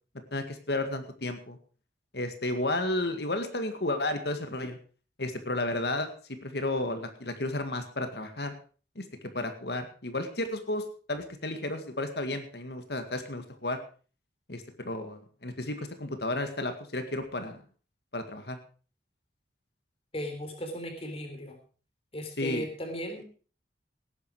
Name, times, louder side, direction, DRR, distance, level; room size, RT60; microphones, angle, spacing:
voice 1, 0.3-1.6 2.1-4.8 5.2-6.1 6.4-8.5 9.0-9.1 9.3-13.8 14.5-17.6 18.1-18.6 22.4-22.7, left 2 dB, 60° left, 7 dB, 2.0 m, -32 dB
voice 2, 20.1-21.6 22.1-23.3, equal, 30° left, 5 dB, 3.7 m, -36 dB
18.0 x 10.0 x 4.8 m, 0.38 s
head